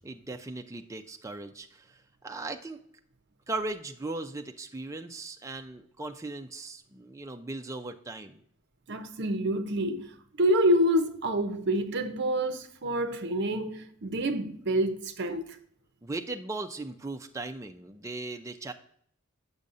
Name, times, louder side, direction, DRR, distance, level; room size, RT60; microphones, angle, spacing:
voice 1, 0.0-2.8 3.5-8.4 16.0-18.7, right 2 dB, 15° right, 0.4 m, -38 dB
voice 2, 8.9-10.1 10.4-15.5, equal, 55° right, 0.6 m, -27 dB
6.9 x 6.3 x 2.5 m
head